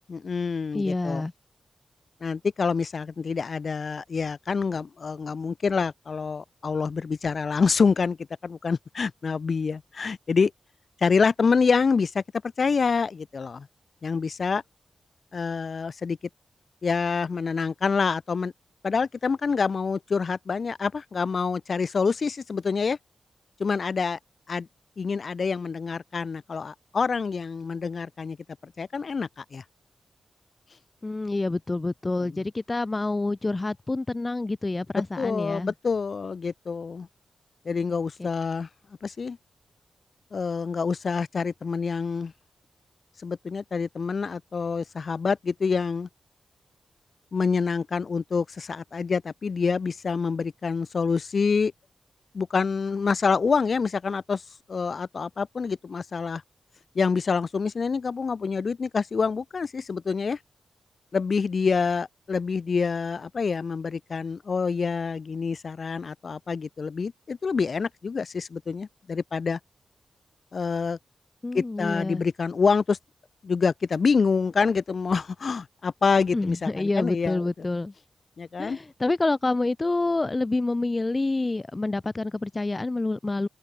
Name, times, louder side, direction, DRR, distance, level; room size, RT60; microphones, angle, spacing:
voice 1, 0.1-1.3 2.2-8.2 8.4-10.5 11.0-12.2 12.6-13.7 14.0-14.6 15.3-16.2 16.8-18.5 18.8-23.0 23.6-24.2 24.5-24.7 25.0-28.4 28.6-29.6 35.2-37.1 37.7-38.7 39.0-39.4 40.3-42.3 43.2-46.1 47.3-51.7 52.3-54.4 54.7-56.4 56.9-60.4 61.1-69.6 70.5-71.0 71.5-73.0 73.4-77.7 78.4-78.8, left 5 dB, 55° left, 7.4 m, -26 dB
voice 2, 0.7-1.3 31.0-35.7 38.2-38.3 71.4-72.2 76.3-77.9 78.6-83.5, left 2 dB, 25° left, 6.1 m, -27 dB
open air
wide cardioid pair, 90°, 0 cm